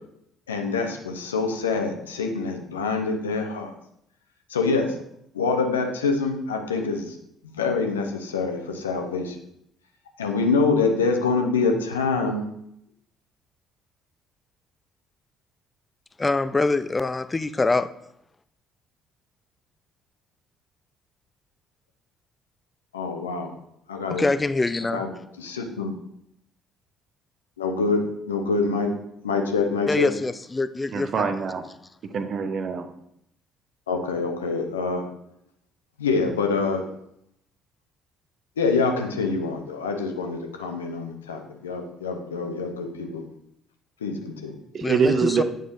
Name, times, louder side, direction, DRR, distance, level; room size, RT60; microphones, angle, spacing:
voice 1, 0.5-3.7 4.5-5.0 5.3-7.2 7.4-9.4 10.2-12.5 22.9-23.5 23.9-24.3 24.9-25.1 25.4-25.9 27.6-28.9 29.2-30.1 33.9-35.0 36.0-36.8 38.6-43.2 44.0-44.5, left 4 dB, 80° left, 4 dB, 0.8 m, -25 dB
voice 2, 16.2-17.9 24.1-25.0 29.9-31.3 44.8-45.4, left 3 dB, 20° left, 14 dB, 0.4 m, -24 dB
voice 3, 30.9-31.6 32.1-32.9 44.7-45.4, right 5 dB, 45° right, 8 dB, 0.8 m, -24 dB
9.0 x 6.4 x 2.6 m, 0.75 s
figure-of-eight pair, 50°, 0 cm